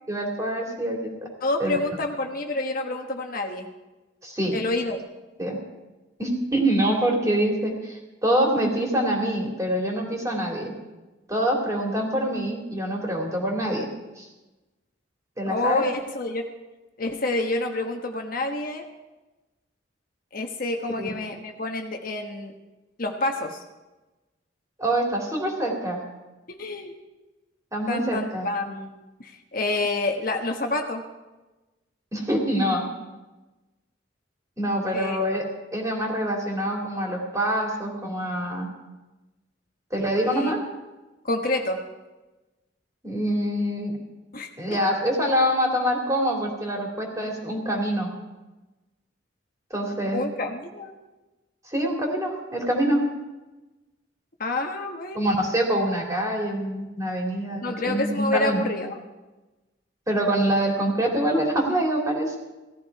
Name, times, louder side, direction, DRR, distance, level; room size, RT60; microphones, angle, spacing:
voice 1, 0.1-1.3 1.6-1.8 4.2-4.6 5.4-5.6 6.2-10.7 11.3-13.9 14.2-14.3 15.4-15.8 21.0-21.1 24.8-26.0 27.7-28.5 32.1-32.9 34.6-35.4 35.7-38.7 39.9-40.6 43.0-43.9 44.6-48.1 49.7-50.2 51.7-53.0 55.1-58.6 60.1-62.3, right 1 dB, 15° right, 0 dB, 2.9 m, -25 dB
voice 2, 1.4-3.7 4.5-5.0 15.5-16.5 17.0-18.8 20.3-22.5 23.0-23.6 26.6-26.9 27.9-28.9 29.2-31.0 34.9-35.2 40.1-40.5 41.2-41.8 44.3-44.8 50.1-50.9 54.4-55.3 57.6-59.0, left 2 dB, 50° left, 3 dB, 1.2 m, -28 dB
17.0 x 13.5 x 4.7 m, 1.1 s
head